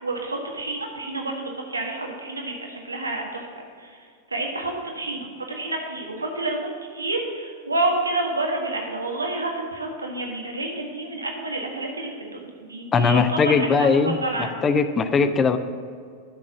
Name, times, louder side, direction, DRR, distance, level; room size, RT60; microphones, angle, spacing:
voice 1, 0.0-3.5 3.8-3.9 4.3-14.5, right 2 dB, 80° right, 1 dB, 1.6 m, -29 dB
voice 2, 12.9-15.6, left 5 dB, 20° left, 11 dB, 0.6 m, -20 dB
11.5 x 6.2 x 6.2 m, 2.2 s
figure-of-eight pair, 90°, 0 cm